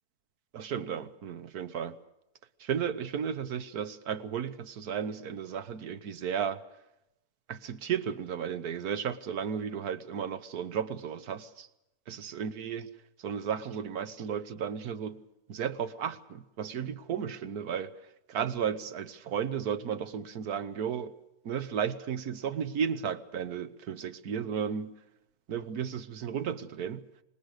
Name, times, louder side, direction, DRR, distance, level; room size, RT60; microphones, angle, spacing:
voice 1, 0.5-2.0 2.6-6.6 7.5-11.7 12.1-12.9 13.2-15.2 15.5-17.9 18.3-21.1 21.4-24.9 25.5-27.0, right 8 dB, 70° right, 1.6 m, -34 dB
25.5 x 21.0 x 6.6 m
omnidirectional pair, 1.7 m